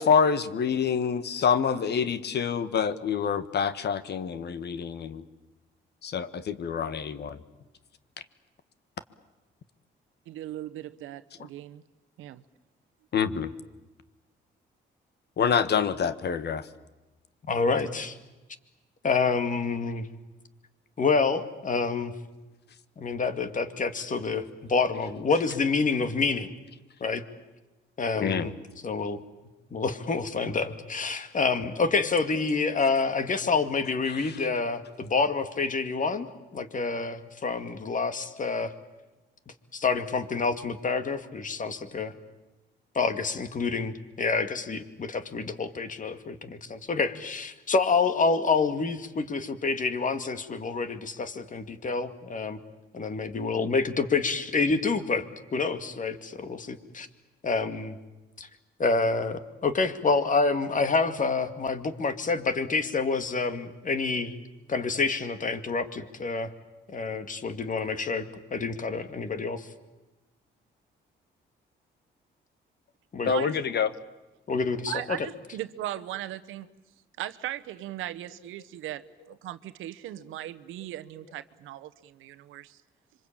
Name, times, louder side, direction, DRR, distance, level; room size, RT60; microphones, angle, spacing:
voice 1, 0.0-5.2 6.0-7.4 11.4-11.5 13.1-13.5 15.4-16.7 28.2-28.5 34.1-34.4 73.2-73.9, left 6 dB, 60° left, 13 dB, 1.5 m, -26 dB
voice 2, 10.3-11.8 12.2-12.4 73.2-73.5 74.9-76.7 77.2-82.8, right 13 dB, 90° right, 12 dB, 1.1 m, -38 dB
voice 3, 17.5-18.2 19.0-20.1 21.0-22.1 23.0-26.5 27.0-27.2 28.0-28.5 28.8-29.2 29.7-36.3 36.5-38.7 39.7-42.1 42.9-52.6 52.9-55.3 55.5-57.1 57.4-58.0 58.4-58.5 58.8-64.4 64.7-66.5 66.9-69.7 73.1-73.3 74.5-75.2, left 4 dB, 40° left, 10 dB, 2.2 m, -27 dB
26.0 x 24.5 x 8.9 m, 1.1 s
cardioid pair, 90°, 20 cm